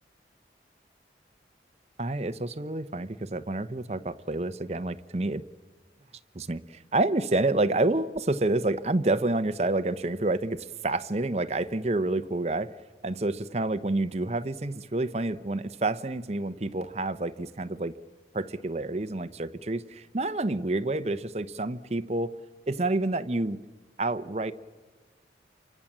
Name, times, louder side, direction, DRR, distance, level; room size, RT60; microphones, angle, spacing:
voice 1, 2.0-5.4 6.3-12.7 13.0-17.9 18.3-22.4 22.7-23.6 24.0-24.5, right 2 dB, 35° right, 11 dB, 0.8 m, -28 dB
29.0 x 24.5 x 7.4 m, 1.4 s
head